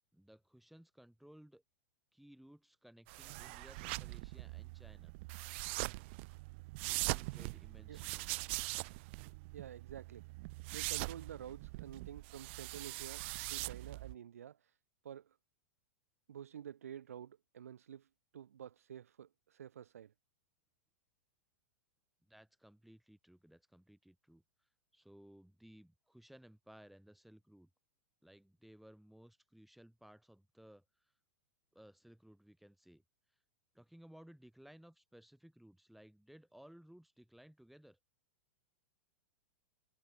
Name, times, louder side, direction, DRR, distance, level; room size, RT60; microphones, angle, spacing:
voice 1, 0.1-1.6 2.1-5.1 6.8-8.4 22.2-24.4 24.9-27.7 28.2-31.1 31.7-33.0 33.7-38.0, equal, ahead, 4.1 m, -60 dB
sound 1, 3.1-14.1, right 25 dB, 50° right, 0.5 m, -42 dB
voice 2, 9.5-10.2 10.7-14.8 15.0-15.4 16.3-18.1 18.3-20.1, right 9 dB, 75° right, 1.3 m, -50 dB
hypercardioid pair, 105°, 8 cm